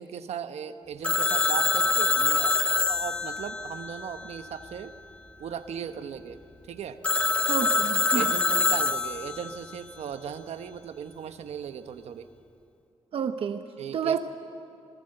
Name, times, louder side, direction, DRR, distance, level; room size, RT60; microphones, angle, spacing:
voice 1, 0.0-4.9 5.4-6.4 6.7-7.0 8.1-12.3 13.8-14.2, right 8 dB, 85° right, 9 dB, 1.1 m, -37 dB
Telephone, 1.0-4.7 7.0-9.6, left 3 dB, 10° left, 0.8 m, -25 dB
voice 2, 7.5-8.3 13.1-14.2, right 7 dB, 60° right, 8 dB, 0.8 m, -29 dB
27.0 x 19.0 x 7.8 m, 2.6 s
wide cardioid pair, 170°, 11 cm